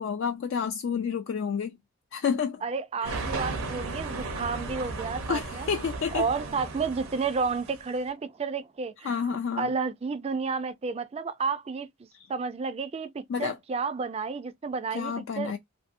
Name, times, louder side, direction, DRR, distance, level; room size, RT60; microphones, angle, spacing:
voice 1, 0.0-1.8 2.1-2.6 3.0-3.2 5.3-6.3 9.0-9.7 12.1-12.3 13.3-13.6 14.9-15.6, left 6 dB, 55° left, 0.3 m, -30 dB
voice 2, 2.6-5.7 6.1-9.3 9.6-11.9 12.3-15.5, right 4 dB, 30° right, 0.3 m, -31 dB
sound 1, 3.0-8.0, right 3 dB, 75° right, 0.6 m, -35 dB
2.6 x 2.6 x 2.5 m
head